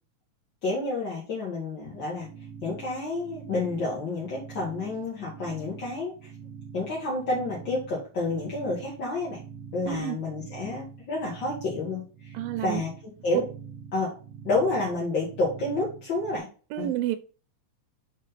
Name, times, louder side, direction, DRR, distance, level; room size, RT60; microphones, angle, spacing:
voice 1, 0.6-2.3 2.6-6.3 6.7-9.4 9.7-13.5 13.9-14.1 14.4-16.5 16.8-16.9, left 3 dB, 45° left, -5 dB, 1.6 m, -30 dB
sound 1, 1.9-16.4, right 6 dB, 70° right, 1.8 m, -45 dB
voice 2, 9.9-10.2 12.3-12.8 13.3-13.4 16.7-17.2, right 13 dB, 85° right, 8 dB, 2.3 m, -29 dB
5.3 x 5.1 x 4.0 m, 0.37 s
omnidirectional pair, 4.1 m